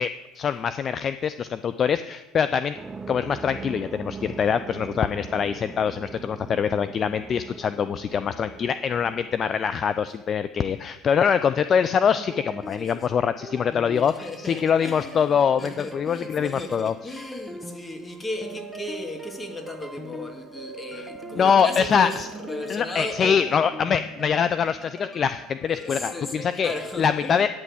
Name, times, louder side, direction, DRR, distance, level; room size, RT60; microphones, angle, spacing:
voice 1, 0.0-2.7 3.1-16.9 20.9-21.1 21.4-22.3 22.7-26.7 27.0-27.5, left 7 dB, 40° left, 0.4 m, -24 dB
sound 1, 2.7-10.1, right 4 dB, 20° right, 0.5 m, -41 dB
sound 2, 11.8-27.1, left 1 dB, ahead, 1.0 m, -42 dB
voice 2, 12.8-13.2 14.0-23.5 25.7-27.4, left 1 dB, 15° left, 2.1 m, -35 dB
sound 3, 18.3-26.8, right 7 dB, 85° right, 0.8 m, -45 dB
8.9 x 6.1 x 8.4 m
hypercardioid pair, 70°, 0 cm